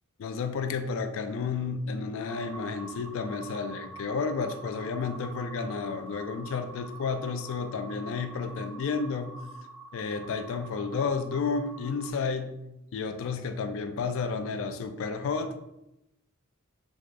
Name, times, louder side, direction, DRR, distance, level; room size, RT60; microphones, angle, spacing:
voice 1, 0.2-9.3 9.9-12.6 12.9-15.6, left 5 dB, 65° left, 0.3 m, -31 dB
sound 1, 2.3-12.1, right 2 dB, 65° right, 0.8 m, -46 dB
4.7 x 2.0 x 2.5 m
head